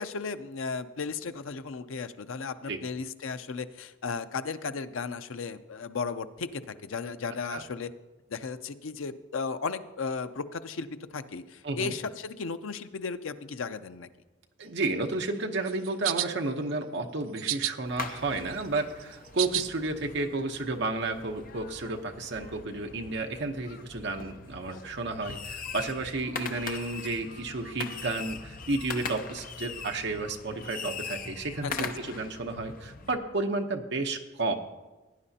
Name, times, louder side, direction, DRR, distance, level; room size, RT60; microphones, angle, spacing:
voice 1, 0.0-7.9 8.3-14.1 31.6-32.2, left 5 dB, 85° left, 11 dB, 0.6 m, -35 dB
voice 2, 14.6-34.5, right 2 dB, 60° right, 4 dB, 0.9 m, -32 dB
sound 1, 15.7-16.3 17.4-17.7 18.2-19.6, right 14 dB, 85° right, 0.4 m, -30 dB
sound 2, 17.9-33.2, left 5 dB, 45° left, 0.7 m, -41 dB
17.5 x 9.9 x 2.8 m, 1.1 s
head